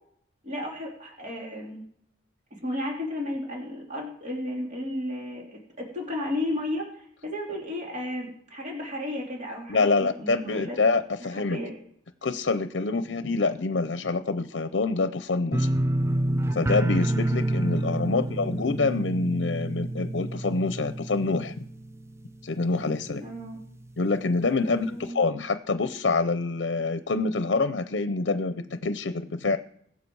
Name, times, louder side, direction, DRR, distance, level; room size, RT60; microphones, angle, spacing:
voice 1, 0.4-1.8 2.5-10.8 11.3-11.8 18.1-18.3 23.1-23.6 24.6-25.2, left 1 dB, 45° right, -2 dB, 2.9 m, -34 dB
voice 2, 9.7-11.6 12.2-15.7 16.5-21.5 22.4-23.2 24.0-29.6, left 3 dB, 75° left, 11 dB, 0.6 m, -26 dB
sound 1, 15.5-22.4 22.7-23.2 23.6-23.7, right 1 dB, 15° right, 0.4 m, -28 dB
21.5 x 7.5 x 4.7 m, 0.69 s
head